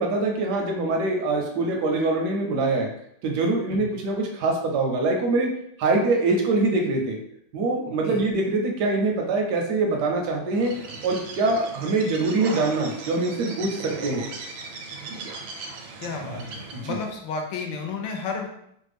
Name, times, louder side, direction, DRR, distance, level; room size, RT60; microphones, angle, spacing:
voice 1, 0.0-2.9 3.2-5.5 5.8-7.2 7.5-10.7 11.0-14.2 16.7-17.0, right 3 dB, 70° right, 1 dB, 1.0 m, -24 dB
Bird, 10.5-17.1, right 4 dB, 90° right, 1.4 m, -37 dB
voice 2, 16.0-18.5, left 4 dB, 75° left, 2 dB, 1.2 m, -32 dB
3.2 x 2.1 x 3.3 m, 0.73 s
omnidirectional pair, 2.1 m